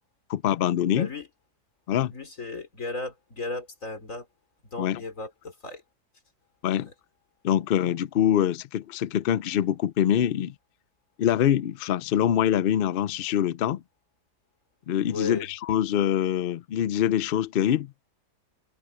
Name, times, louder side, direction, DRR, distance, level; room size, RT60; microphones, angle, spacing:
voice 1, 0.3-1.1 1.9-2.1 4.8-5.0 6.6-6.9 7.4-10.5 11.2-13.8 14.9-17.9, left 10 dB, 75° left, 0.5 m, -24 dB
voice 2, 0.9-1.3 2.1-4.3 4.7-5.8 6.7-6.9 15.0-15.5, left 3 dB, 55° left, 4.2 m, -35 dB
omnidirectional pair, 1.6 m